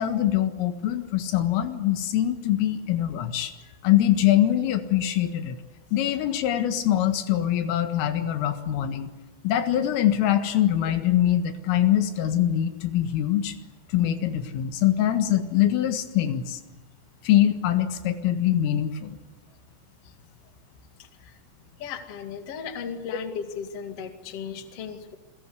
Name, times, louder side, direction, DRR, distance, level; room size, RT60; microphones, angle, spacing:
voice 1, 0.0-3.5 3.8-5.6 5.9-9.1 9.4-13.6 13.9-16.6 17.2-19.2, left 12 dB, 85° left, 8 dB, 4.2 m, -23 dB
voice 2, 21.0-21.4 21.8-25.2, left 7 dB, 45° left, 6 dB, 2.2 m, -36 dB
28.5 x 21.5 x 8.1 m, 1.1 s
omnidirectional pair, 5.8 m